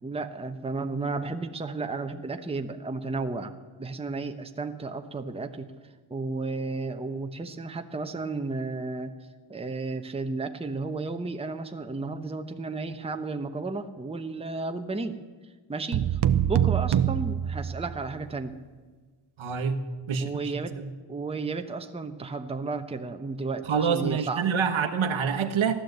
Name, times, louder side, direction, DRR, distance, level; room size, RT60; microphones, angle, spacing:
voice 1, 0.0-3.5 3.8-5.7 6.1-9.1 9.5-15.2 15.7-18.6 20.2-20.8 21.1-24.4, right 3 dB, 10° right, 6 dB, 0.9 m, -33 dB
sound 1, 15.9-18.2, right 10 dB, 55° right, 0.8 m, -25 dB
voice 2, 19.4-19.8 20.1-20.9 23.7-25.7, right 6 dB, 75° right, 7 dB, 1.4 m, -26 dB
16.0 x 11.5 x 7.9 m, 1.4 s
wide cardioid pair, 100°, 48 cm